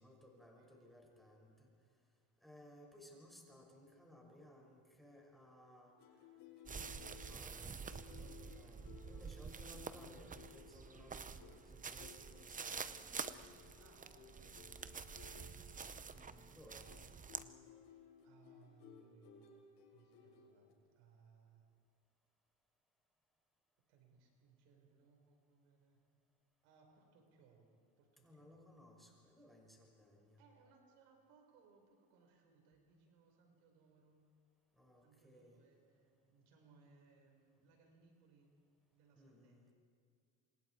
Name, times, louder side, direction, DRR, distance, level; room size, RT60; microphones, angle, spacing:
voice 1, 0.0-1.7 2.4-5.9 6.7-13.2 14.4-14.7 16.1-16.9 28.2-30.4 34.7-35.6 39.1-39.7, left 1 dB, ahead, 0 dB, 6.0 m, -61 dB
sound 1, 6.0-20.7, left 7 dB, 75° left, 6.4 m, -61 dB
sound 2, 6.7-17.4, right 5 dB, 20° right, 0.7 m, -48 dB
voice 2, 13.8-15.8 17.1-17.6 17.9-19.6 19.9-21.7 23.9-26.0 26.6-28.6 30.4-34.2 35.0-38.5 38.9-39.7, right 5 dB, 90° right, 2 dB, 5.0 m, -68 dB
28.0 x 26.0 x 4.7 m, 2.2 s
cardioid pair, 110°, 41 cm